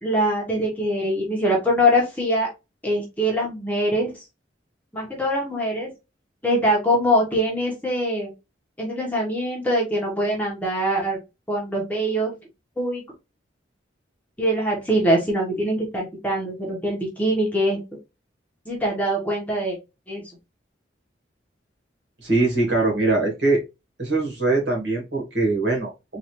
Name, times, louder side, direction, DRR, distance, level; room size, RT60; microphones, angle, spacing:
voice 1, 0.0-2.5 2.8-4.2 4.9-5.9 6.4-8.3 8.8-11.2 11.5-12.3 12.8-13.0 14.4-17.8 18.6-19.8 20.1-20.3, equal, 10° left, -2 dB, 1.2 m, -23 dB
voice 2, 22.2-23.6 24.0-26.2, right 2 dB, 65° right, -1 dB, 2.0 m, -22 dB
4.0 x 2.7 x 3.0 m, 0.25 s
head